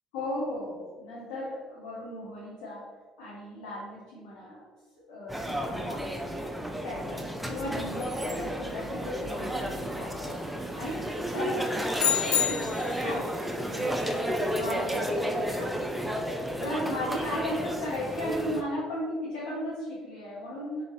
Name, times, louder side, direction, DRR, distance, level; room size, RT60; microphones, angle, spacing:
voice 1, 0.1-2.8 3.2-4.6 5.1-6.4 6.8-10.3 10.7-11.0 11.3-16.1 16.6-20.8, left 1 dB, 80° left, -8 dB, 1.2 m, -36 dB
sound 1, 5.3-18.6, equal, 5° right, 0.5 m, -32 dB
sound 2, 12.0-13.1, left 10 dB, 60° left, 0.4 m, -27 dB
3.4 x 3.1 x 4.1 m, 1.4 s
hypercardioid pair, 65°, 2 cm